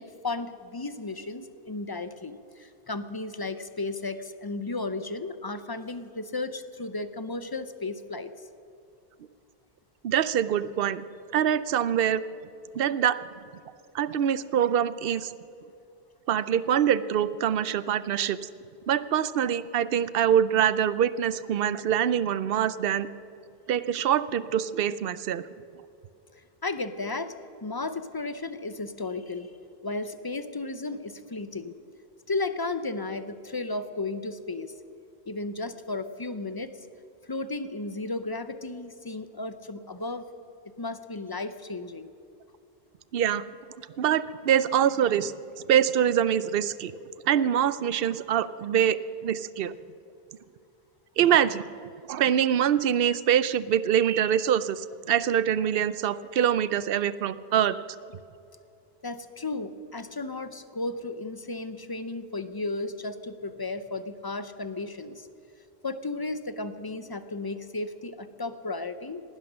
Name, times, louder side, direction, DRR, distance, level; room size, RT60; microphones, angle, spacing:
voice 1, 0.0-8.3 26.6-27.3 27.6-29.5 29.8-31.8 32.3-34.7 35.3-36.7 37.3-40.3 40.8-42.1 59.0-65.3 65.8-69.2, left 3 dB, 30° left, 12 dB, 0.5 m, -34 dB
voice 2, 10.0-11.0 11.3-12.2 12.8-13.2 13.9-15.3 16.3-18.5 18.9-23.1 23.7-25.4 43.1-43.4 44.0-45.3 45.7-46.9 47.3-49.0 49.2-49.7 51.2-51.7 52.1-57.8, right 9 dB, 65° right, 16 dB, 0.7 m, -24 dB
19.0 x 12.0 x 6.2 m, 2.6 s
omnidirectional pair, 1.1 m